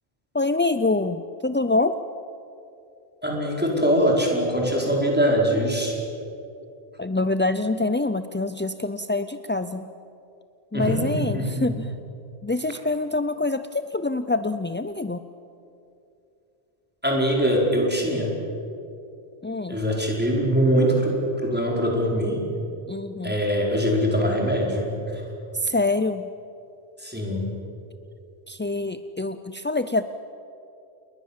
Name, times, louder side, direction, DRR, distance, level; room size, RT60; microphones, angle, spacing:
voice 1, 0.3-2.0 7.0-9.9 10.7-11.9 12.4-15.2 19.4-19.8 22.9-23.4 25.5-26.3 28.5-30.0, left 2 dB, 20° left, 10 dB, 0.3 m, -25 dB
voice 2, 3.2-6.0 10.7-11.6 17.0-18.4 19.7-22.5 23.2-25.2 27.0-27.5, equal, 10° right, -1 dB, 4.9 m, -23 dB
29.0 x 21.5 x 7.4 m, 2.7 s
omnidirectional pair, 1.1 m